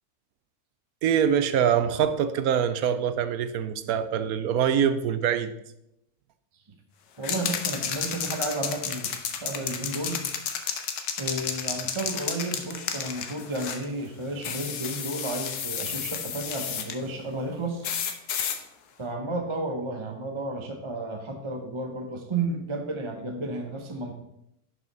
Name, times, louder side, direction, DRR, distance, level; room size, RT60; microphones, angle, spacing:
voice 1, 1.0-5.5, right 8 dB, 75° right, 11 dB, 1.1 m, -24 dB
sound 1, 7.2-13.9 14.4-17.0 17.8-18.6, left 7 dB, 85° left, 1.4 m, -32 dB
voice 2, 7.2-10.2 11.0-17.9 19.0-24.1, right 2 dB, 25° right, 3 dB, 0.8 m, -32 dB
11.0 x 5.6 x 4.0 m, 0.81 s
omnidirectional pair, 1.6 m